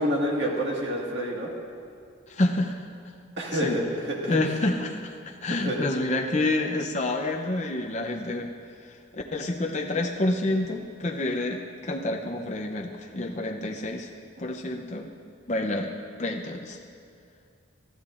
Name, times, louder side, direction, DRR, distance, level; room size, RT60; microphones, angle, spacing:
voice 1, 0.0-1.5 3.4-4.4 5.5-5.8, equal, 60° right, -2 dB, 1.8 m, -28 dB
voice 2, 2.3-2.8 3.5-3.8 4.3-8.5 8.9-14.1 14.4-15.1 15.5-15.9 16.2-16.8, left 2 dB, 35° left, 1 dB, 0.6 m, -28 dB
20.0 x 13.0 x 2.5 m, 2.4 s
head